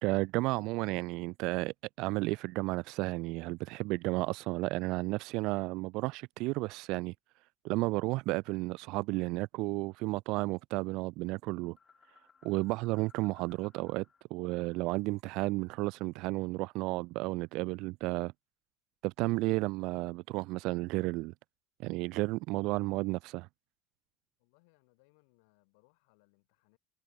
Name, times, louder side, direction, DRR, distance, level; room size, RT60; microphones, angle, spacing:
voice 1, 0.0-7.1 7.6-11.8 12.4-14.0 14.3-18.3 19.0-21.3 21.8-23.5, right 22 dB, 60° right, 0.3 m, -32 dB
sound 1, 11.6-14.2 14.5-16.8, left 6 dB, 30° left, 7.5 m, -65 dB
voice 2, 24.4-26.8, left 31 dB, 65° left, 4.1 m, -69 dB
figure-of-eight pair, 65°, 0 cm